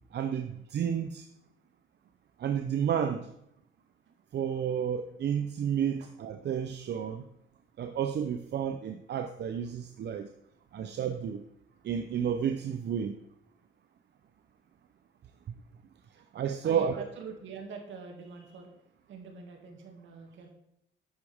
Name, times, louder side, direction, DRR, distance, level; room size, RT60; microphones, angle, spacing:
voice 1, 0.1-1.3 2.4-3.3 4.3-7.2 7.8-10.3 10.7-11.4 11.8-13.2 16.3-17.0, right 8 dB, 60° right, 8 dB, 0.7 m, -31 dB
voice 2, 16.6-18.7 19.1-20.5, right 5 dB, 75° right, 2 dB, 2.4 m, -45 dB
11.5 x 8.4 x 3.6 m, 0.77 s
cardioid pair, 90°, 20 cm